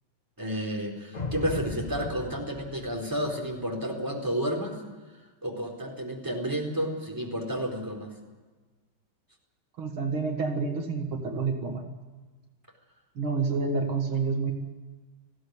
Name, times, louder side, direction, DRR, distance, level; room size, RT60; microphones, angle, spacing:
voice 1, 0.4-4.8 5.4-8.1, equal, 10° right, -1 dB, 4.1 m, -31 dB
sound 1, 1.1-3.6, left 2 dB, 25° left, 1.1 m, -37 dB
voice 2, 9.8-11.8 13.2-14.5, right 4 dB, 75° right, 3 dB, 2.9 m, -28 dB
19.5 x 16.0 x 9.6 m, 1.3 s
omnidirectional pair, 2.2 m